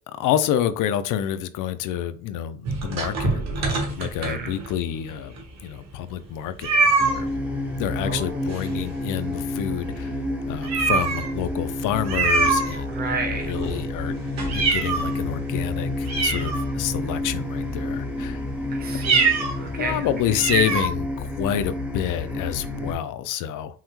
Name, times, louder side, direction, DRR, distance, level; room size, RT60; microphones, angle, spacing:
voice 1, 0.1-7.3 7.8-10.2 10.5-13.1 13.4-14.2 14.5-18.4 19.7-23.8, left 10 dB, 80° left, 12 dB, 0.5 m, -28 dB
sound 1, 2.6-4.8 5.4-5.5 5.7-5.8 6.6-7.2 8.5-9.1 9.4-9.5 10.0-10.1 10.6-11.4 12.0-13.1 13.5-15.2 15.7-15.8 16.0-17.0 17.6-17.9 18.9-19.6 19.9-20.0 20.3-20.9, right 4 dB, 55° right, 1.3 m, -24 dB
voice 2, 4.0-4.6 8.0-8.4 12.9-13.5 18.7-20.1, right 3 dB, 30° right, 3 dB, 0.8 m, -32 dB
sound 2, 7.0-22.9, left 2 dB, 5° right, 0.5 m, -30 dB
5.6 x 2.1 x 3.0 m, 0.41 s
cardioid pair, 160°, 31 cm